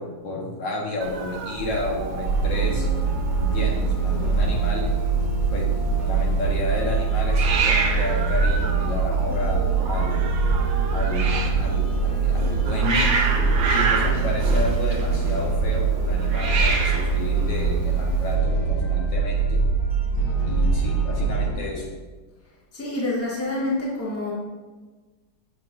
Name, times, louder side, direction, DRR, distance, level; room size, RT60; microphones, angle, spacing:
voice 1, 0.0-2.9 3.4-4.9 5.5-5.7 6.1-10.3 10.9-13.0 13.7-19.6 20.5-21.8, left 2 dB, 75° left, -2 dB, 1.9 m, -31 dB
Hiss, 1.0-18.3, right 4 dB, 80° right, 1.5 m, -29 dB
sound 1, 2.2-21.5, right 4 dB, 35° left, 1.0 m, -23 dB
voice 2, 22.7-24.3, left 2 dB, 10° left, -5 dB, 1.0 m, -27 dB
7.2 x 6.2 x 2.6 m, 1.3 s
omnidirectional pair, 2.0 m